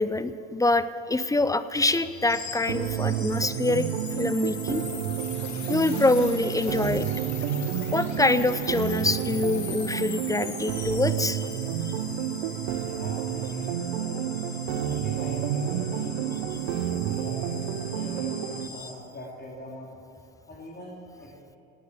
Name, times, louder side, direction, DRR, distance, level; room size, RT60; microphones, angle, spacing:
voice 1, 0.0-3.9 4.2-4.8 5.7-7.1 7.9-11.5 11.8-11.9, left 2 dB, 10° left, 14 dB, 0.6 m, -25 dB
sound 1, 1.8-18.9, left 5 dB, 45° left, 3.0 m, -41 dB
sound 2, 2.7-18.7, right 10 dB, 75° right, 0.9 m, -30 dB
voice 2, 12.9-14.2 14.7-16.4 17.0-17.5 17.9-19.9 20.5-21.3, left 1 dB, 25° left, -4 dB, 3.6 m, -42 dB
17.5 x 9.5 x 7.0 m, 2.9 s
hypercardioid pair, 75°, 39 cm